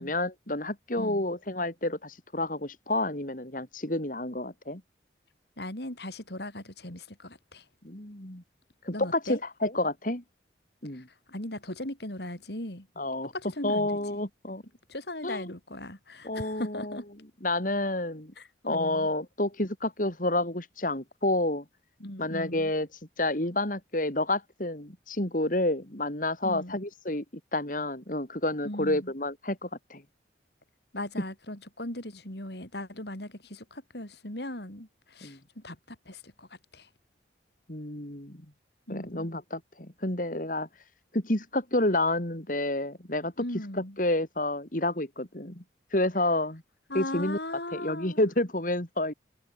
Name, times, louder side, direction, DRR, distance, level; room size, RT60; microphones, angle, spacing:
voice 1, 0.0-4.8 7.8-8.4 8.8-10.2 10.8-11.1 13.0-13.3 13.6-14.6 15.2-15.5 16.2-17.0 17.4-18.3 18.7-21.6 22.2-22.9 23.2-27.2 27.5-30.0 35.2-35.4 37.7-38.4 38.9-40.7 41.1-43.3 44.0-45.6 45.9-46.6 46.9-47.4 47.7-49.1, left 1 dB, 45° left, 3.3 m, -29 dB
voice 2, 5.6-7.7 8.9-9.4 10.9-12.9 13.3-14.3 14.9-17.1 18.4-19.1 22.0-22.7 26.4-26.8 28.6-29.1 30.9-36.9 38.9-39.3 43.4-44.0 46.9-48.2, left 1 dB, 65° left, 5.3 m, -38 dB
head